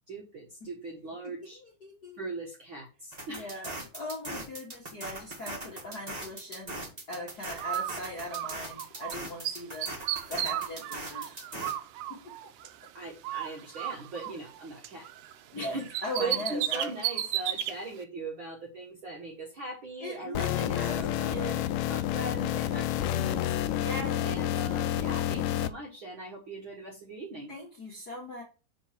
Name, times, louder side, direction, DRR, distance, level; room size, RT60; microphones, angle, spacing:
voice 1, 0.1-1.6 2.2-3.5 12.9-15.1 15.6-21.6 21.9-23.5 24.2-27.5, right 2 dB, 60° right, -1 dB, 1.3 m, -40 dB
voice 2, 1.2-2.2 3.3-6.8 7.1-11.7 12.2-12.3 15.5-16.9 20.0-21.8 23.7-24.3 27.5-28.4, left 1 dB, 45° left, -3 dB, 1.2 m, -40 dB
sound 1, 3.1-11.7, right 1 dB, 25° right, 0.9 m, -40 dB
Bird, 7.6-9.2 9.4-12.9 13.2-15.3 15.6-17.7, right 12 dB, 80° right, 1.9 m, -34 dB
sound 2, 20.3-25.7, left 11 dB, 80° left, 2.0 m, -29 dB
6.6 x 4.4 x 5.8 m, 0.34 s
omnidirectional pair, 4.0 m